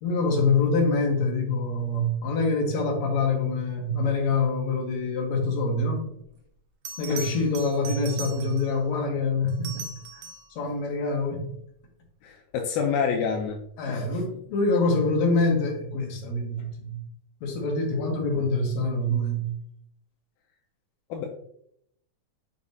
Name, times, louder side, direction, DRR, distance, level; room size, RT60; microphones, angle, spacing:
voice 1, 0.0-6.0 7.0-9.9 10.1-10.2 10.5-11.5 13.8-17.0 17.4-19.5, left 3 dB, 65° left, 1 dB, 2.4 m, -25 dB
Bell, 6.2-6.3 6.9-8.8 9.5-10.6 13.2-13.5, right 5 dB, 75° right, 2.0 m, -39 dB
voice 2, 12.2-13.6 13.9-14.1 21.1-21.3, left 6 dB, 80° left, 1 dB, 1.9 m, -27 dB
6.9 x 5.1 x 2.7 m, 0.72 s
omnidirectional pair, 3.8 m